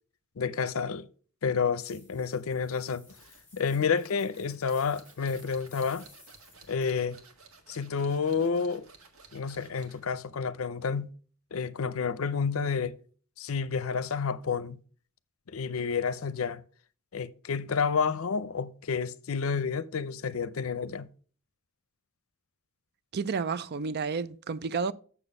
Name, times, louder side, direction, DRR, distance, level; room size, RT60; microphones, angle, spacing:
voice 1, 0.4-1.1 1.4-3.0 3.5-6.1 6.7-7.2 7.7-8.9 9.3-11.1 11.5-13.0 13.4-14.8 15.5-16.6 17.1-21.1, left 5 dB, 70° left, 0.6 m, -30 dB
sound 1, 1.8-6.9, left 3 dB, 10° left, 3.3 m, -57 dB
sound 2, 3.1-10.1, right 4 dB, 75° right, 1.7 m, -56 dB
voice 2, 23.1-24.9, right 5 dB, 50° right, 0.5 m, -31 dB
7.0 x 7.0 x 5.4 m
head